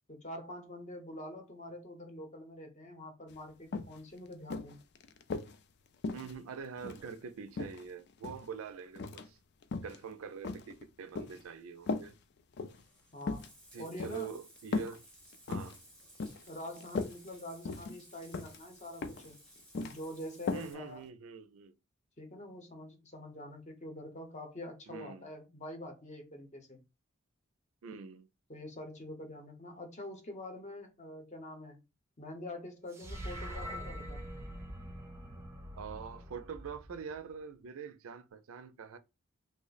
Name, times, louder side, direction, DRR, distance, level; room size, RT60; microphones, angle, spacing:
voice 1, 0.1-4.8 13.1-13.5 13.8-14.3 16.5-19.4 19.8-21.0 22.2-26.8 28.5-31.8 32.2-34.2, left 1 dB, 35° left, 0.7 m, -45 dB
sound 1, 3.3-3.4 3.7-4.0 4.5-5.6 6.0-7.1 7.6-8.5 9.0-9.3 9.6-10.0 10.4-11.4 11.9-12.1 12.5-12.8 13.2-13.5 14.0-14.2 14.7-15.0 15.3-15.8 16.2-16.5 16.8-17.2 17.7-18.0 18.3-18.6 19.0-19.3 19.6-20.0 20.5-20.7 21.0-21.1, left 3 dB, 50° left, 0.4 m, -37 dB
voice 2, 6.1-9.4 9.8-12.2 13.7-15.0 15.5-15.8 20.5-21.8 24.9-25.3 27.8-28.3 35.8-39.0, right 6 dB, 70° right, 0.4 m, -44 dB
Bathtub (filling or washing), 12.7-20.7, right 1 dB, 5° left, 0.9 m, -58 dB
sound 2, 32.9-37.3, equal, 15° right, 0.5 m, -44 dB
3.2 x 2.0 x 3.9 m
head